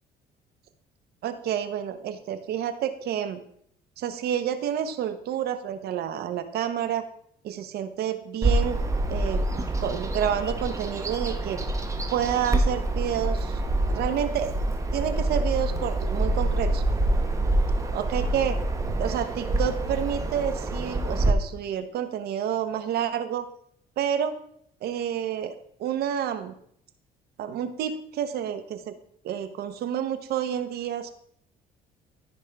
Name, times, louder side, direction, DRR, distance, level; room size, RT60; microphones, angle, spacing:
voice 1, 1.2-3.4 4.0-7.0 7.4-8.8 9.1-11.6 12.1-14.6 14.9-16.8 17.9-18.6 19.0-23.4 24.0-24.3 24.8-25.5 25.8-26.5 27.4-28.9 29.2-31.1, right 9 dB, 70° right, 10 dB, 0.9 m, -29 dB
Bird vocalization bird call bird song, 8.4-21.3, right 1 dB, 20° right, 1.0 m, -26 dB
13.5 x 5.3 x 3.5 m, 0.68 s
cardioid pair, 110°, 17 cm